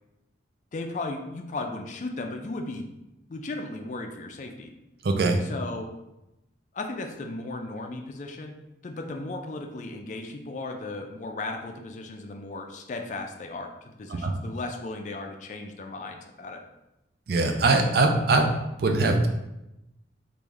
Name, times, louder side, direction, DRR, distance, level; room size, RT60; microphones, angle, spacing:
voice 1, 0.7-2.9 3.3-4.7 5.4-5.9 6.7-8.6 8.8-16.6, left 2 dB, 40° left, 4 dB, 0.3 m, -36 dB
voice 2, 5.0-5.4 14.1-14.3 17.3-18.5 18.8-19.3, right 3 dB, 55° right, 4 dB, 0.4 m, -22 dB
3.1 x 2.5 x 3.5 m, 0.92 s
head